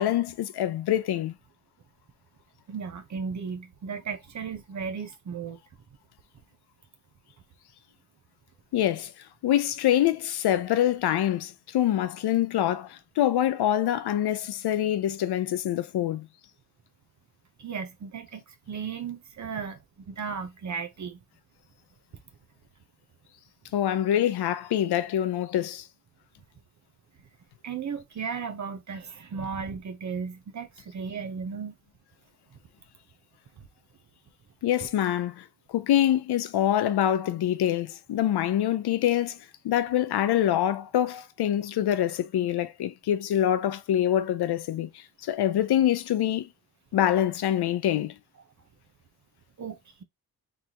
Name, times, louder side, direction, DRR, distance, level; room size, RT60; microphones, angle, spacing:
voice 1, 0.0-1.3 8.7-9.1 9.4-16.3 23.7-25.9 34.6-39.4 39.6-44.9 45.2-46.5 46.9-48.1, left 11 dB, 85° left, 0.6 m, -25 dB
voice 2, 2.7-5.6 17.6-19.8 20.1-21.2 27.6-31.7 49.6-50.0, right 6 dB, 50° right, 0.9 m, -35 dB
4.0 x 3.3 x 2.9 m
wide cardioid pair, 140°, 38 cm